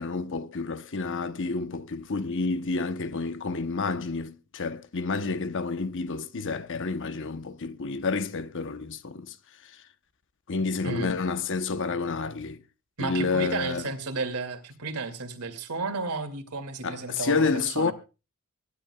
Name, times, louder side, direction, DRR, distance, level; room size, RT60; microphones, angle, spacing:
voice 1, 0.0-9.4 10.5-12.6 13.0-13.9 16.8-17.9, left 4 dB, 60° left, 0.9 m, -29 dB
voice 2, 10.8-11.2 13.0-17.9, right 3 dB, 85° right, 2.4 m, -32 dB
24.5 x 12.0 x 2.3 m
head